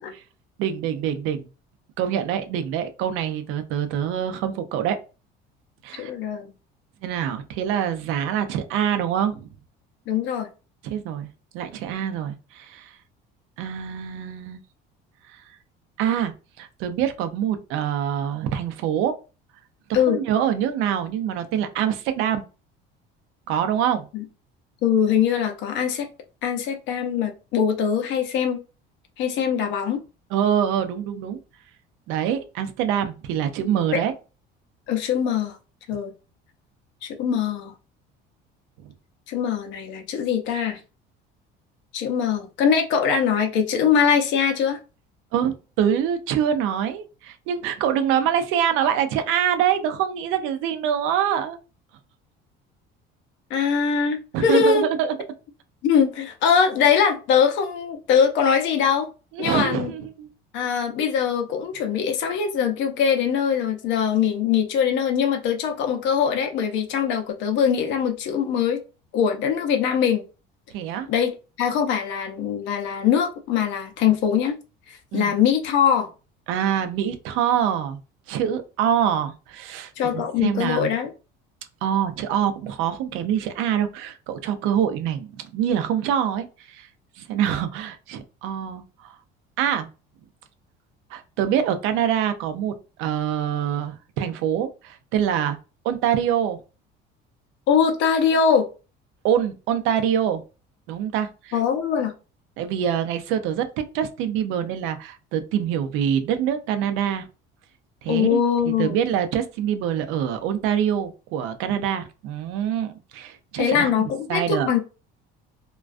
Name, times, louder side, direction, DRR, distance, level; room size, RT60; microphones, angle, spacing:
voice 1, 0.6-1.5 2.0-5.0 5.8-6.1 7.0-9.5 10.8-11.3 11.5-12.9 13.6-14.6 15.3-15.4 16.0-16.3 16.6-19.1 19.9-22.4 23.5-24.1 30.3-31.4 32.1-34.1 45.3-51.6 54.3-55.1 59.3-60.3 70.7-71.1 75.1-75.3 76.5-78.0 78.3-80.9 81.8-86.9 87.2-89.1 89.6-89.9 91.1-95.6 95.8-96.6 99.2-100.4 100.9-101.6 102.6-103.6 103.9-107.3 108.0-108.4 108.8-113.9 114.3-114.7, right 9 dB, 75° right, 0.5 m, -25 dB
voice 2, 6.0-6.5 10.1-10.5 19.9-20.2 24.1-24.2 24.8-26.1 26.4-28.6 29.2-30.0 33.9-34.0 34.9-35.6 35.9-36.1 37.0-37.7 39.3-40.8 41.9-44.8 53.5-54.9 55.8-59.1 59.4-59.9 60.5-68.8 69.1-70.2 71.1-71.3 71.6-74.6 74.9-76.1 80.0-81.1 97.7-98.7 101.5-102.1 108.1-109.0 113.6-114.8, left 7 dB, 60° left, 0.5 m, -22 dB
2.3 x 2.2 x 2.4 m
cardioid pair, 135°, 21 cm